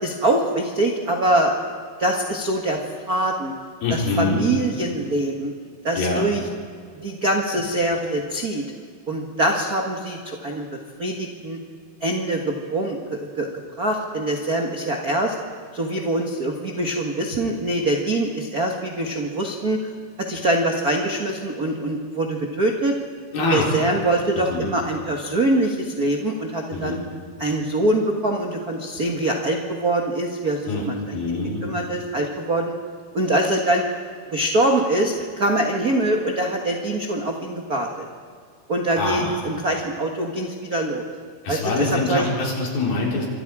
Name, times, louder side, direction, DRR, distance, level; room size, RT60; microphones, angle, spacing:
voice 1, 0.0-1.6 2.0-2.8 3.1-3.5 3.9-5.5 5.8-6.4 6.9-8.6 9.1-10.7 11.0-11.6 12.0-13.5 13.8-15.3 15.7-19.8 20.3-22.9 23.5-27.0 27.4-32.7 33.1-33.8 34.3-38.0 38.7-41.1 41.5-42.2, right 1 dB, 70° right, 1 dB, 0.8 m, -24 dB
voice 2, 3.8-4.5 5.9-6.3 23.3-23.7 24.3-24.7 26.7-27.0 30.7-30.8 31.1-31.6 39.0-39.4 41.4-43.3, left 2 dB, 65° left, -3 dB, 6.3 m, -24 dB
28.0 x 25.0 x 4.9 m, 2.1 s
omnidirectional pair, 4.6 m